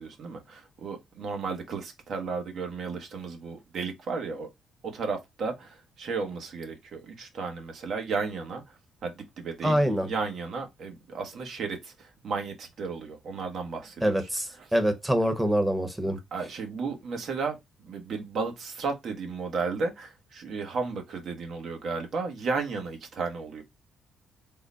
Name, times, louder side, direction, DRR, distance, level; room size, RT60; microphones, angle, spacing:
voice 1, 0.0-4.5 4.8-14.3 14.6-14.7 16.3-23.6, right 4 dB, 65° right, 1.0 m, -34 dB
voice 2, 9.6-10.1 14.0-16.2, equal, 10° right, 0.9 m, -25 dB
3.7 x 2.1 x 3.7 m
cardioid pair, 90°, 0 cm